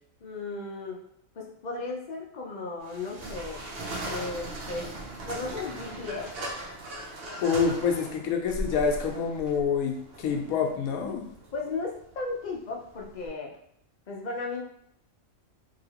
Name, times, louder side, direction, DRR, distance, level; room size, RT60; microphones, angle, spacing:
voice 1, 0.2-1.0 1.3-3.6 4.0-4.9 5.3-6.3 11.0-11.2 11.5-13.5 14.1-14.6, left 3 dB, 55° left, -2 dB, 0.5 m, -35 dB
sound 1, 2.8-13.3, right 1 dB, 55° right, 0.7 m, -39 dB
voice 2, 7.4-11.3, left 6 dB, 85° left, 2 dB, 1.0 m, -27 dB
3.0 x 2.8 x 2.8 m, 0.71 s
omnidirectional pair, 1.4 m